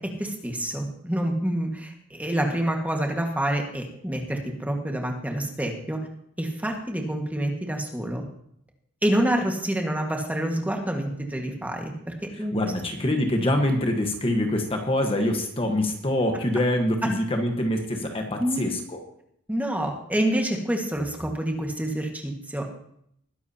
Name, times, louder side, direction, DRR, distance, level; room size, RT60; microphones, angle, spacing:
voice 1, 0.0-6.0 6.4-8.2 9.0-12.5 18.4-18.7 19.5-22.6, right 1 dB, 5° right, 2 dB, 1.7 m, -27 dB
voice 2, 12.3-19.0, left 1 dB, 25° left, 3 dB, 1.3 m, -25 dB
20.5 x 10.5 x 2.9 m, 0.70 s
head